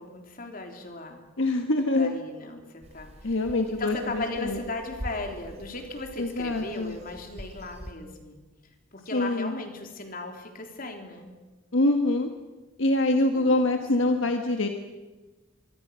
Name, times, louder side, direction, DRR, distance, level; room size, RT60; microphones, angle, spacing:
voice 1, 0.0-1.2 2.0-3.4 3.7-8.4 8.9-11.3 13.3-13.6 14.0-14.2, left 2 dB, 45° left, 4 dB, 3.5 m, -37 dB
voice 2, 1.4-2.1 3.2-4.6 6.2-7.0 9.1-9.5 11.7-12.3 12.8-14.7, left 2 dB, 70° left, 5 dB, 1.6 m, -25 dB
sound 1, 2.8-7.9, equal, 35° right, 2.8 m, -44 dB
25.0 x 24.5 x 6.4 m, 1.2 s
head